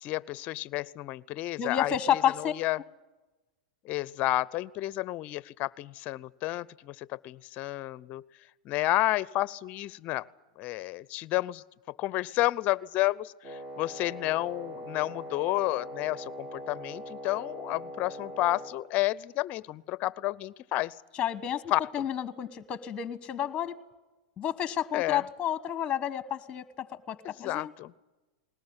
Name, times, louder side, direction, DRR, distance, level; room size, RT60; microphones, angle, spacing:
voice 1, 0.0-1.9 2.4-2.8 3.9-8.2 8.7-10.3 10.6-11.6 12.0-20.9 21.7-21.8 24.9-25.2 27.2-27.9, left 16 dB, 45° left, 22 dB, 0.7 m, -31 dB
voice 2, 1.6-2.5 21.1-23.8 24.4-27.7, left 9 dB, 25° left, 15 dB, 1.3 m, -31 dB
Wind instrument woodwind instrument, 13.4-18.8, equal, 25° right, 3.1 m, -41 dB
20.5 x 18.5 x 9.8 m, 1.1 s
hypercardioid pair, 110°, 4 cm